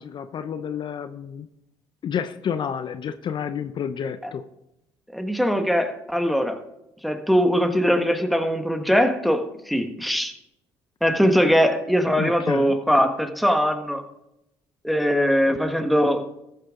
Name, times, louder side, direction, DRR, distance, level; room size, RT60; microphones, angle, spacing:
voice 1, 0.0-1.5 2.0-4.4 12.2-12.7 15.5-15.6, left 8 dB, 50° left, 10 dB, 0.7 m, -30 dB
voice 2, 5.1-6.6 7.0-10.3 11.0-14.0 14.8-16.3, equal, ahead, 6 dB, 1.5 m, -21 dB
14.5 x 8.7 x 3.8 m, 0.85 s
supercardioid pair, 75°, 10 cm